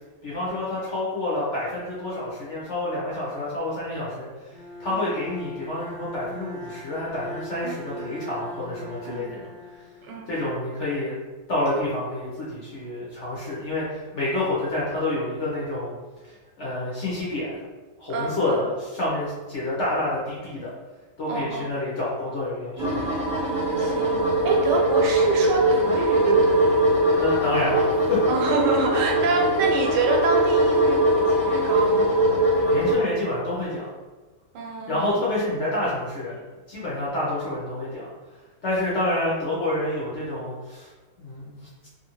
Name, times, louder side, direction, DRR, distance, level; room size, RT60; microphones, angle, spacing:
voice 1, 0.2-4.3 4.8-9.5 10.3-11.1 11.5-15.9 16.2-17.6 18.0-20.7 21.2-23.1 27.2-28.3 32.7-33.9 34.9-36.4 36.7-38.1 38.6-40.9 41.2-41.9, left 1 dB, 55° left, -7 dB, 0.9 m, -28 dB
Bowed string instrument, 4.5-10.5, left 1 dB, 35° left, 1.2 m, -40 dB
voice 2, 7.6-8.2 9.0-9.3 10.0-10.3 18.1-18.6 21.3-21.7 23.8-26.7 28.3-32.1 34.5-35.4, right 4 dB, 80° right, 1 dB, 1.2 m, -27 dB
sound 1, 22.8-32.9, right 1 dB, 25° right, 0.4 m, -21 dB
2.7 x 2.6 x 2.9 m, 1.3 s
omnidirectional pair, 1.8 m